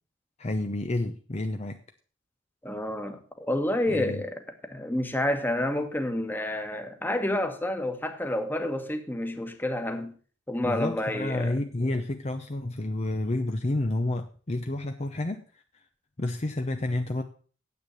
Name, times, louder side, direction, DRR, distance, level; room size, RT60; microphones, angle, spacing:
voice 1, 0.4-1.8 3.9-4.2 10.6-15.6 16.2-17.2, left 2 dB, 35° left, 0.7 m, -30 dB
voice 2, 2.6-4.4 4.7-10.1 10.5-11.6, left 1 dB, 10° left, 1.4 m, -29 dB
9.5 x 8.1 x 7.0 m
head